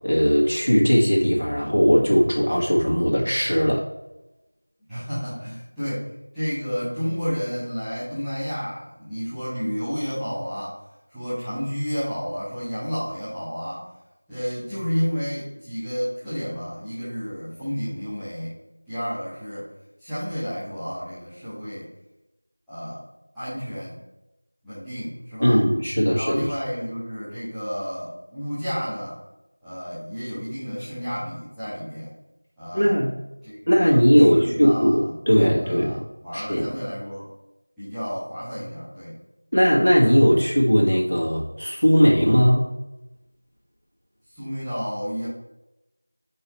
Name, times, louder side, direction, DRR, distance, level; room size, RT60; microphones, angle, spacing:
voice 1, 0.0-3.9 25.4-26.5 32.7-33.2 33.7-36.0 36.3-36.7 39.5-42.8, equal, 40° left, -4 dB, 1.7 m, -19 dB
voice 2, 4.9-6.1 6.3-10.8 11.1-13.8 14.3-18.5 18.9-19.7 20.0-21.9 22.7-23.0 23.3-24.0 24.6-25.7 26.1-29.2 29.6-32.1 32.6-32.9 33.4-34.0 34.3-35.1 35.4-37.3 37.8-39.2 44.3-45.3, equal, ahead, -23 dB, 0.4 m, -31 dB
6.9 x 5.5 x 3.1 m, 0.96 s
figure-of-eight pair, 180°, 0 cm